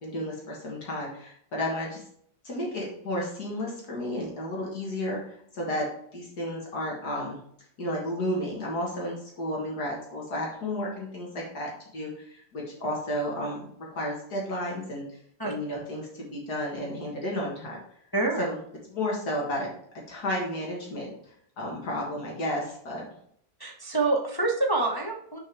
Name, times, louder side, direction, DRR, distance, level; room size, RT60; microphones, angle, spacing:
voice 1, 0.0-2.0 2.4-5.9 6.1-7.4 7.8-15.0 15.4-17.8 18.4-18.6 18.9-19.7 20.1-21.1 21.6-23.0, left 1 dB, 65° left, -2 dB, 2.1 m, -32 dB
voice 2, 18.1-18.4 23.6-25.4, right 2 dB, 30° left, -1 dB, 0.4 m, -26 dB
6.4 x 4.6 x 4.6 m, 0.67 s
omnidirectional pair, 1.8 m